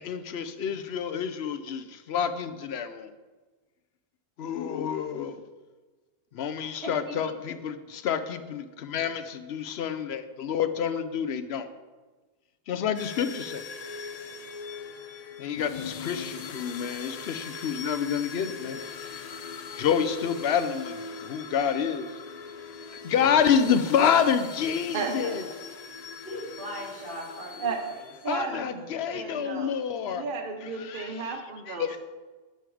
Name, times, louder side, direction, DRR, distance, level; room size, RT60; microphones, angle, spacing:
voice 1, 0.0-3.1 4.4-5.4 6.3-11.7 12.7-13.6 15.4-18.8 19.8-22.1 23.0-25.4 28.3-30.2 30.8-31.3 31.7-32.0, left 7 dB, 75° left, 11 dB, 0.9 m, -28 dB
voice 2, 6.8-7.2 26.2-28.1, equal, 80° right, -5 dB, 3.3 m, -38 dB
sound 1, 13.0-28.6, left 5 dB, 50° left, 0.5 m, -41 dB
voice 3, 24.9-25.4 27.6-27.8 28.2-29.7 30.1-32.0, right 4 dB, 55° right, 4 dB, 1.1 m, -33 dB
9.1 x 7.0 x 4.9 m, 1.3 s
omnidirectional pair, 1.1 m